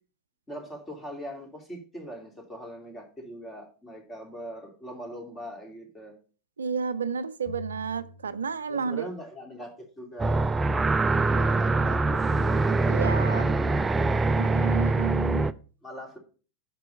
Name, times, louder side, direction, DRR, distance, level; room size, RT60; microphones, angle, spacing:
voice 1, 0.5-6.1 8.7-10.4 11.1-14.2 14.9-15.4 15.8-16.2, equal, 20° left, 2.9 m, -41 dB
voice 2, 6.6-9.1 12.9-13.5 14.3-15.5, right 6 dB, 90° right, 0.4 m, -31 dB
sound 1, 7.5-9.3, left 2 dB, 35° left, 1.7 m, -46 dB
sound 2, 10.2-15.5, right 3 dB, 15° right, 0.4 m, -24 dB
6.0 x 4.6 x 6.2 m
hypercardioid pair, 95°, 0 cm